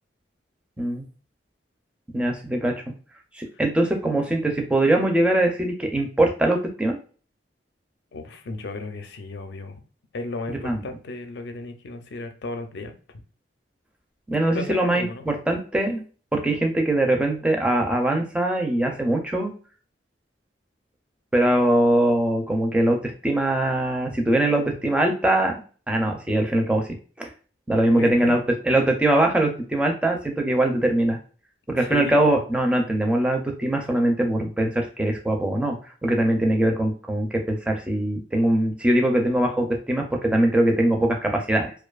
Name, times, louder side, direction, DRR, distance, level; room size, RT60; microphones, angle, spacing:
voice 1, 0.8-1.1 2.1-2.7 3.4-7.0 10.5-10.8 14.3-16.0 16.3-19.5 21.3-23.0 23.2-25.5 25.9-26.9 27.2-27.3 27.7-31.2 31.7-35.8 36.0-41.7, right 1 dB, 5° right, 2 dB, 0.4 m, -22 dB
voice 2, 8.1-9.8 10.1-12.9 14.5-15.2 27.8-28.4 31.8-32.3, left 2 dB, 65° left, 7 dB, 0.5 m, -34 dB
2.5 x 2.3 x 2.3 m, 0.39 s
head